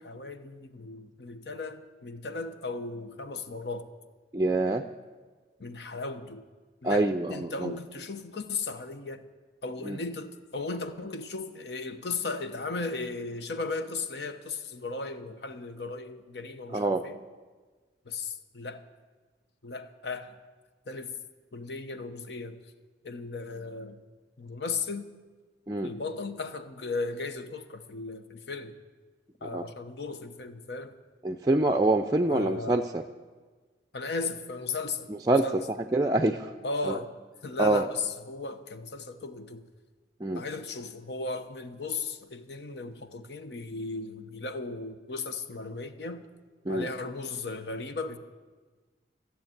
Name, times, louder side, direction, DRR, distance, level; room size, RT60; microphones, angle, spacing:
voice 1, 0.0-3.9 5.6-6.4 6.8-9.2 9.6-17.2 18.0-18.8 19.6-20.3 20.9-21.1 21.5-22.6 23.0-24.0 24.4-25.1 25.8-28.7 29.4-30.9 32.3-32.8 33.9-35.1 35.4-35.6 36.6-37.1 37.4-39.6 40.3-46.2 46.7-48.2, left 3 dB, 70° left, 9 dB, 0.9 m, -36 dB
voice 2, 4.3-4.8 6.8-7.7 9.8-10.0 16.7-17.0 25.7-25.9 29.4-29.7 31.2-33.0 35.3-36.5 36.8-37.0 37.6-37.8 40.2-40.4 46.7-46.9, right 2 dB, 20° right, 5 dB, 0.4 m, -26 dB
15.0 x 7.2 x 9.0 m, 1.4 s
head